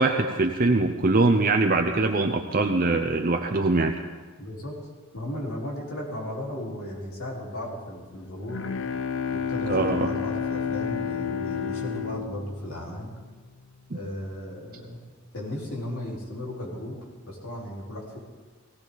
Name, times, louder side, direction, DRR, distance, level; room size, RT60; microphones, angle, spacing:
voice 1, 0.0-3.9 9.7-10.1 13.9-14.0, right 2 dB, 40° right, 4 dB, 0.7 m, -22 dB
voice 2, 4.4-4.8 5.1-8.6 9.3-13.1 13.9-15.0 15.3-18.2, left 1 dB, 80° left, -4 dB, 4.3 m, -35 dB
Bowed string instrument, 8.1-13.6, left 7 dB, 60° left, 0.6 m, -31 dB
18.0 x 17.5 x 4.1 m, 1.4 s
head